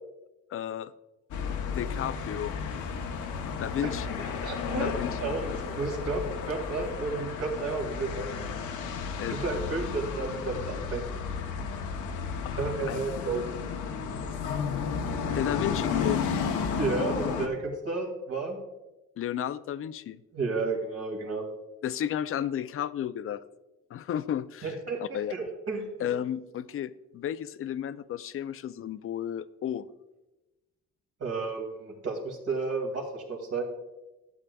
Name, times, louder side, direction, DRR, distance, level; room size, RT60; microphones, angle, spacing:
voice 1, 0.5-0.9 1.6-2.5 3.6-4.3 4.8-5.2 9.2-9.4 12.4-13.0 15.3-16.2 19.2-20.2 21.8-23.4 23.9-25.3 26.0-29.9, left 10 dB, 45° left, 15 dB, 0.4 m, -33 dB
sound 1, 1.3-17.5, left 6 dB, 80° left, 0.9 m, -33 dB
voice 2, 4.2-4.9 5.2-8.3 9.3-11.1 12.6-13.5 16.8-18.6 20.3-21.5 24.6-25.9 31.2-33.6, right 3 dB, 55° right, 1 dB, 2.1 m, -32 dB
12.0 x 8.1 x 2.3 m, 1.0 s
cardioid pair, 90°, 30 cm